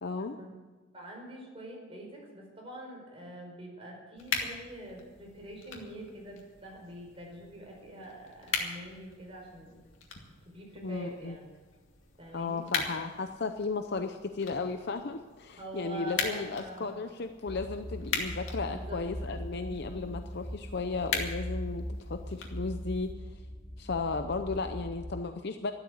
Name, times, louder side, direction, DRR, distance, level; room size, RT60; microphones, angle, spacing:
voice 1, 0.0-0.4 10.8-11.4 12.3-23.4 23.8-25.7, left 4 dB, 60° left, 7 dB, 0.7 m, -35 dB
voice 2, 0.9-9.8 10.4-11.5 12.2-12.7 15.6-17.0 18.6-19.0, right 1 dB, 30° right, -1 dB, 4.8 m, -45 dB
sound 1, 4.2-23.1, left 5 dB, 75° left, 2.3 m, -40 dB
sound 2, 17.5-25.1, equal, ahead, 0.9 m, -40 dB
13.0 x 12.0 x 7.9 m, 1.3 s
head